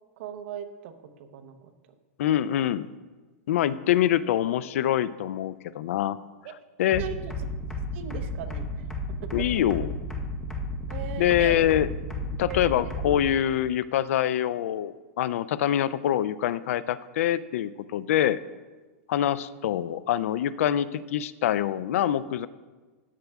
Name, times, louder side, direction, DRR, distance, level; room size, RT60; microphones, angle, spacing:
voice 1, 0.2-0.9 1.2-1.7 6.4-6.5 7.0-7.3 7.9-8.8 9.2-9.5 10.9-11.7 12.5-12.9 18.2-18.3, right 8 dB, 55° right, 6 dB, 0.9 m, -38 dB
voice 2, 2.2-2.9 3.5-6.2 6.8-7.0 9.3-10.0 11.2-11.9 12.4-18.4 19.1-22.5, left 11 dB, 70° left, 16 dB, 0.4 m, -25 dB
sound 1, 6.9-13.3, left 1 dB, 5° left, 1.0 m, -33 dB
13.0 x 8.8 x 2.4 m, 1.3 s
supercardioid pair, 160°, 8 cm